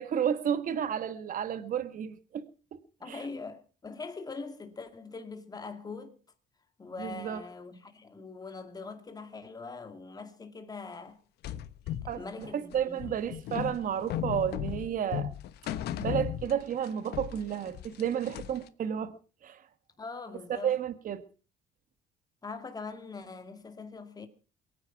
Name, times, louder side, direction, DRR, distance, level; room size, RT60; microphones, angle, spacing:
voice 1, 0.0-2.8 3.1-3.2 7.0-7.4 12.1-15.3 16.0-19.1 19.4-19.6 20.5-21.2, right 9 dB, 55° right, 1.7 m, -32 dB
voice 2, 3.0-6.2 6.8-11.2 12.0-13.1 20.0-20.8 22.4-24.3, left 4 dB, 20° left, 2.3 m, -42 dB
sound 1, 11.4-16.9 17.1-18.7, left 11 dB, 75° left, 1.2 m, -36 dB
23.0 x 9.7 x 6.0 m
cardioid pair, 110°, 17 cm